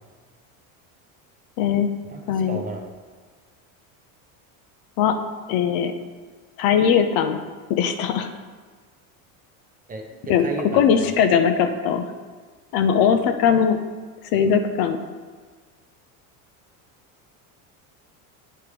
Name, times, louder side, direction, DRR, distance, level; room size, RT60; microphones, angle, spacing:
voice 1, 1.6-1.9 2.3-2.6 5.0-5.1 5.5-5.9 6.6-7.4 7.7-8.3 10.3-10.5 10.7-12.0 12.7-13.8 14.3-15.0, left 7 dB, 55° left, 7 dB, 0.6 m, -19 dB
voice 2, 2.5-2.8 9.9-11.2, right 2 dB, 20° right, 1 dB, 0.8 m, -33 dB
8.6 x 3.3 x 4.9 m, 1.5 s
supercardioid pair, 120°, 42 cm